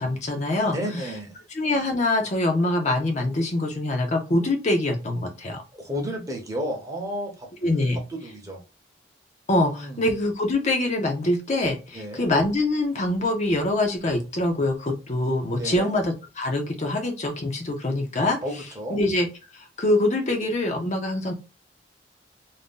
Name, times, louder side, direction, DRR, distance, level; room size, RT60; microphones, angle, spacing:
voice 1, 0.0-0.8 1.5-5.6 7.6-8.0 9.5-18.4 18.9-19.3 19.5-21.3, left 2 dB, 40° left, 3 dB, 0.6 m, -24 dB
voice 2, 0.7-1.4 5.7-7.5 8.1-8.6 9.6-10.0 11.9-12.3 15.5-15.9 18.4-19.0, equal, 20° right, 1 dB, 0.8 m, -32 dB
2.6 x 2.2 x 3.6 m, 0.29 s
head